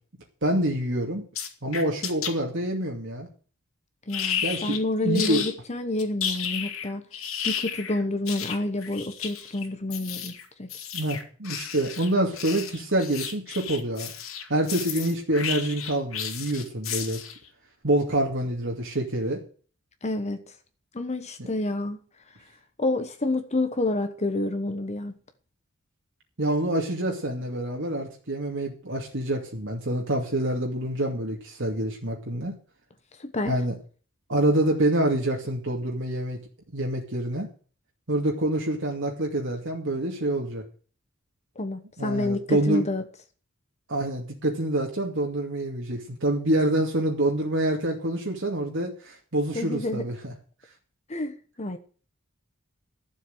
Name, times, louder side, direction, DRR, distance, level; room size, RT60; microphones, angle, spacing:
voice 1, 0.4-1.2 1.6-3.3 4.4-5.4 10.9-14.1 14.5-17.2 17.8-19.4 21.4-21.5 26.4-32.6 33.5-33.7 34.3-36.4 36.7-37.5 38.1-40.6 42.0-42.8 43.9-50.3, right 1 dB, 60° right, 2.5 m, -26 dB
sound 1, 1.3-2.3 4.1-4.8 5.1-5.5 6.0-17.4, left 8 dB, 70° left, 2.5 m, -33 dB
voice 2, 4.1-7.0 7.4-10.7 20.0-20.5 20.9-22.0 22.8-25.2 33.2-33.6 41.6-43.0 49.5-50.1 51.1-51.8, left 2 dB, 30° left, 1.1 m, -29 dB
12.5 x 7.5 x 8.0 m
head